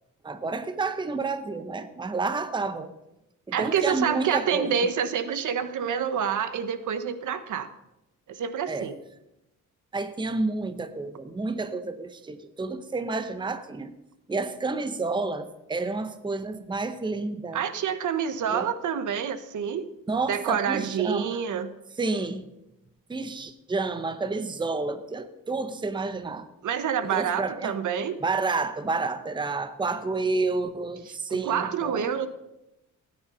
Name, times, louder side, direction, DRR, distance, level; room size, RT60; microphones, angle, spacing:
voice 1, 0.2-2.9 3.5-4.9 8.7-8.9 9.9-13.9 14.3-17.6 18.5-18.7 20.1-21.4 22.0-22.4 23.1-26.5 27.0-27.7 28.2-32.1, right 3 dB, 15° right, 11 dB, 0.8 m, -30 dB
voice 2, 3.5-7.7 8.3-8.9 17.5-19.9 20.3-21.7 26.6-28.2 31.3-32.3, right 8 dB, 65° right, 12 dB, 1.1 m, -27 dB
17.0 x 9.8 x 5.5 m, 0.92 s
cardioid pair, 145°, 32 cm